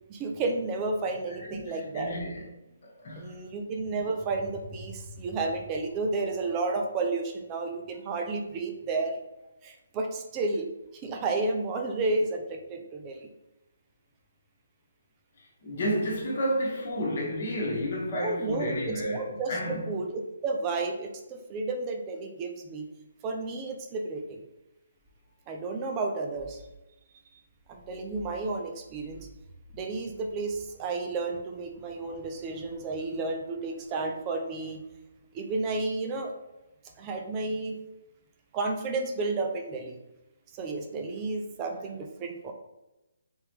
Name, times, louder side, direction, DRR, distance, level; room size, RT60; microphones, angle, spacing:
voice 1, 0.1-2.1 3.2-9.2 9.6-10.7 11.0-13.3 18.1-22.9 23.2-24.4 25.5-26.6 27.7-29.3 29.7-34.8 35.3-36.3 37.0-37.8 38.5-40.0 40.5-42.5, right 3 dB, 20° right, 0.5 m, -32 dB
voice 2, 1.5-2.5 2.8-3.4 15.6-19.9, equal, 50° left, 1.2 m, -31 dB
3.6 x 3.0 x 3.0 m
hypercardioid pair, 155°, 0 cm